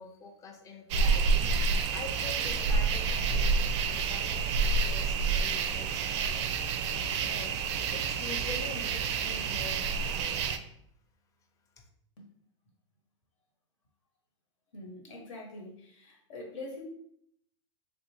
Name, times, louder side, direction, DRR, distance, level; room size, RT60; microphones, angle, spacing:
voice 1, 0.0-7.5 7.9-10.4, left 4 dB, 20° left, 3 dB, 0.5 m, -45 dB
sound 1, 0.9-10.6, right 5 dB, 65° right, 0.4 m, -29 dB
voice 2, 14.7-16.8, left 2 dB, 75° left, 1 dB, 1.1 m, -44 dB
3.5 x 2.5 x 2.8 m, 0.70 s
hypercardioid pair, 125°, 16 cm